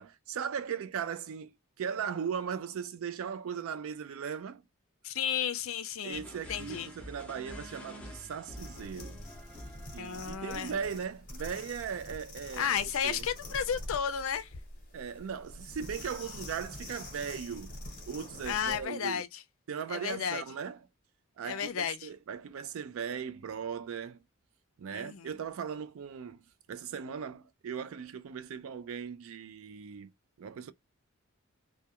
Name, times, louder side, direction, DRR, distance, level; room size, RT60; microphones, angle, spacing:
voice 1, 0.0-4.6 6.0-9.3 9.9-12.8 13.0-13.3 14.9-17.7 18.1-19.2 19.7-20.8 21.4-24.2 24.8-26.4 26.7-30.1 30.4-30.7, right 7 dB, 65° right, 0.3 m, -38 dB
voice 2, 5.0-6.2 6.5-6.9 10.0-10.7 12.6-14.5 18.5-19.4 19.9-20.4 21.4-22.1 24.9-25.3, left 8 dB, 65° left, 0.4 m, -33 dB
sound 1, 6.1-11.0, equal, 5° left, 0.6 m, -48 dB
sound 2, 8.5-18.9, left 1 dB, 35° left, 0.9 m, -45 dB
2.2 x 2.2 x 2.8 m
head